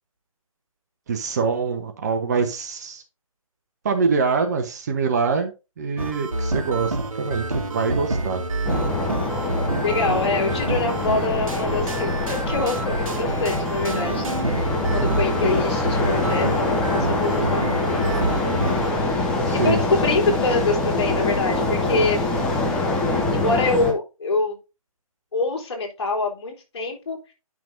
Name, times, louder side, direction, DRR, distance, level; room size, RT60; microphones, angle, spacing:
voice 1, 1.1-3.0 3.8-5.5 5.8-8.4 19.5-19.8, right 5 dB, 30° right, 5 dB, 0.9 m, -24 dB
sound 1, 6.0-18.9, right 2 dB, 65° right, 1.8 m, -28 dB
sound 2, 8.6-23.9, left 2 dB, 5° left, 0.5 m, -24 dB
voice 2, 9.8-14.7 14.9-18.2 19.5-22.2 23.3-24.6 25.3-27.3, left 3 dB, 45° left, 0 dB, 3.4 m, -25 dB
10.5 x 6.0 x 2.7 m, 0.28 s
figure-of-eight pair, 150°, 19 cm